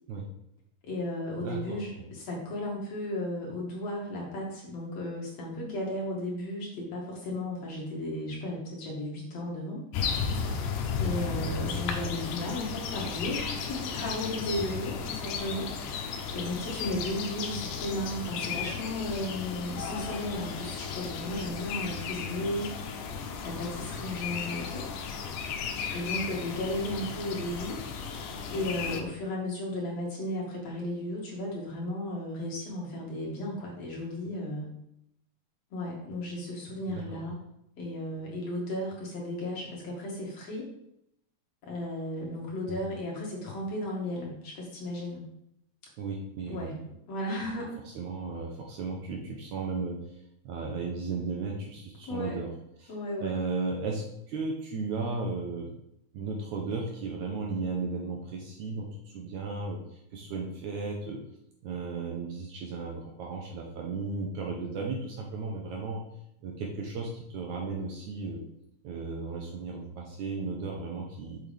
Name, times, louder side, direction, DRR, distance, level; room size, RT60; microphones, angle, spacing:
voice 1, 0.8-9.8 11.0-22.7 23.4-24.8 25.9-27.8 28.5-34.7 35.7-37.4 37.8-40.7 41.6-45.2 46.5-46.7 47.1-47.7 52.0-52.4 52.9-53.3, left 1 dB, 55° left, -3 dB, 2.4 m, -35 dB
voice 2, 1.4-1.8 11.4-11.5 36.9-37.2 42.7-42.8 46.0-46.8 47.9-52.5 52.8-52.9 53.2-55.7 56.1-61.2 61.6-66.0 66.4-68.4 68.8-71.4, right 4 dB, 70° right, 0 dB, 2.0 m, -35 dB
sound 1, 9.9-29.0, left 6 dB, 75° left, 2.2 m, -34 dB
7.0 x 6.2 x 3.4 m, 0.78 s
omnidirectional pair, 4.0 m